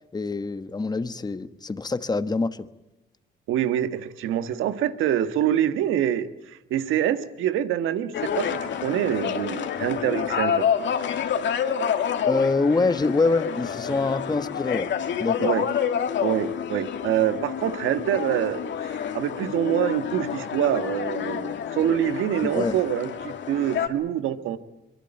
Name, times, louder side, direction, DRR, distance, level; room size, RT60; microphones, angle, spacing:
voice 1, 0.1-2.7 12.3-14.9 15.2-15.5 22.4-22.8, left 3 dB, 20° left, 12 dB, 1.2 m, -25 dB
voice 2, 3.5-10.7 15.4-15.7 16.2-24.6, right 11 dB, 90° right, 10 dB, 1.6 m, -25 dB
sound 1, 8.1-23.9, left 8 dB, 70° left, 2.5 m, -28 dB
23.5 x 23.0 x 9.0 m, 0.97 s
cardioid pair, 90°, 20 cm